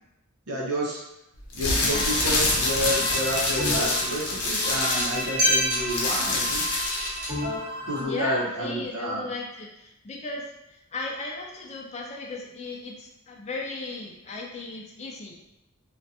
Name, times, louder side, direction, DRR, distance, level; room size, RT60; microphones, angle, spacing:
voice 1, 0.5-1.0 1.5-6.6 7.9-9.3, equal, 80° right, -3 dB, 0.7 m, -30 dB
sound 1, 1.4-7.2, left 2 dB, 85° left, 0.6 m, -26 dB
voice 2, 1.8-2.1 8.0-10.5 10.9-15.4, left 3 dB, 30° left, -1 dB, 0.4 m, -36 dB
sound 2, 1.9-8.0, equal, 35° right, 0.9 m, -29 dB
2.4 x 2.1 x 2.7 m, 0.85 s
head